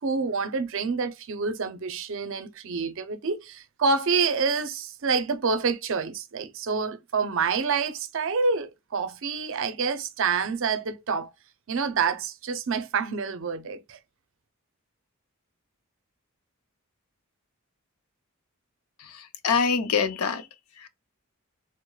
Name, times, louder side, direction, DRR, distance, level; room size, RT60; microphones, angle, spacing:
voice 1, 0.0-11.3 11.7-14.0, right 5 dB, 60° right, 0.5 m, -27 dB
voice 2, 19.0-20.5 20.8-20.9, left 6 dB, 85° left, 0.6 m, -25 dB
4.7 x 2.0 x 2.3 m
head